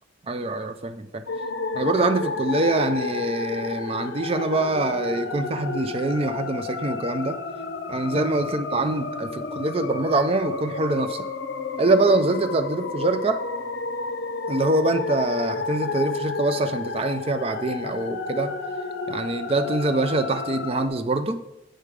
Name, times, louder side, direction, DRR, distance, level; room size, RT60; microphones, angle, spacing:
voice 1, 0.3-1.2 1.7-7.4 7.9-11.3 11.8-13.4 14.5-18.5 19.1-21.4, right 2 dB, 30° right, 10 dB, 0.4 m, -24 dB
sound 1, 1.3-20.9, left 4 dB, 80° left, 0.5 m, -31 dB
7.6 x 3.3 x 5.0 m, 0.91 s
head